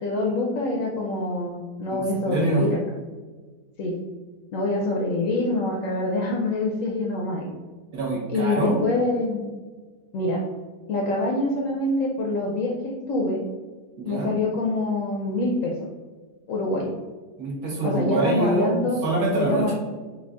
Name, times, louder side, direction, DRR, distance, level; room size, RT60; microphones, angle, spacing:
voice 1, 0.0-2.8 3.8-4.0 4.5-7.5 8.3-9.5 10.1-10.4 10.9-13.4 14.0-15.7 16.5-16.9 17.8-19.0 19.4-19.7, left 2 dB, 70° left, -1 dB, 0.8 m, -25 dB
voice 2, 1.9-2.7 7.9-8.8 14.0-14.3 17.4-18.7 19.0-19.7, right 2 dB, 70° right, -2 dB, 1.5 m, -25 dB
5.8 x 2.3 x 2.4 m, 1.4 s
omnidirectional pair, 1.8 m